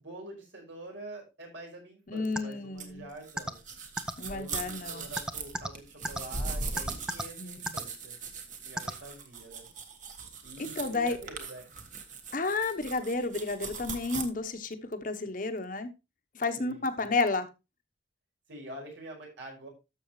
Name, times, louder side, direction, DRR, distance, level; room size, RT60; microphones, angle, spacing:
voice 1, 0.0-3.6 4.2-8.1 8.6-9.7 10.4-11.7 16.5-17.1 18.5-19.7, right 1 dB, 80° right, 0 dB, 5.2 m, -46 dB
voice 2, 2.1-3.1 4.2-5.1 7.4-7.6 10.6-11.2 12.3-15.9 16.3-17.5, left 3 dB, 45° left, 8 dB, 1.0 m, -31 dB
sound 1, 2.3-2.4 3.4-3.5 4.0-4.1 5.2-5.7 6.0-6.2 6.8-7.2 7.7-7.8 8.8-8.9, equal, 5° right, 0.5 m, -31 dB
sound 2, 2.8-14.2, right 4 dB, 40° right, 1.4 m, -39 dB
12.5 x 6.9 x 3.1 m, 0.26 s
head